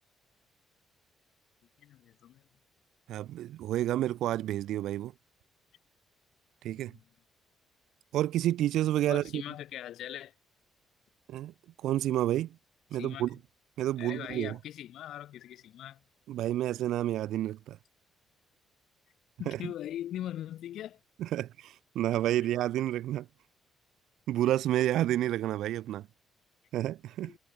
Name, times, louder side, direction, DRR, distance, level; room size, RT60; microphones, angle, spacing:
voice 1, 1.8-2.4 6.8-7.0 9.1-10.3 12.9-13.3 14.0-16.0 19.4-21.0 22.4-22.5 27.2-27.4, left 12 dB, 75° left, 0.8 m, -41 dB
voice 2, 3.1-5.1 6.6-6.9 8.1-9.4 11.3-11.5 11.8-12.6 12.9-13.3 13.8-14.6 16.3-17.8 19.5-19.6 21.2-23.3 24.3-26.1 26.7-27.3, right 13 dB, 85° right, 0.5 m, -30 dB
cardioid pair, 90°, 0 cm